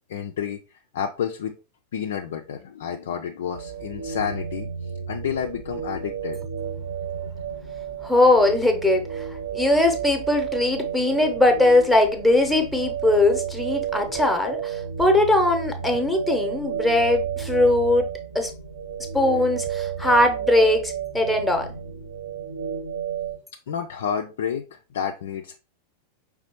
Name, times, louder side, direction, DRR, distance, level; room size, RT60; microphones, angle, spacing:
voice 1, 0.1-0.6 0.9-1.6 1.9-4.7 5.1-6.4 23.7-25.6, left 8 dB, 60° left, 0.3 m, -30 dB
sound 1, 3.5-23.4, right 8 dB, 75° right, 1.2 m, -32 dB
voice 2, 8.0-9.3 9.5-18.1 18.3-18.5 19.1-21.7, left 2 dB, ahead, 0.8 m, -20 dB
4.9 x 3.3 x 3.0 m
figure-of-eight pair, 90°, 0 cm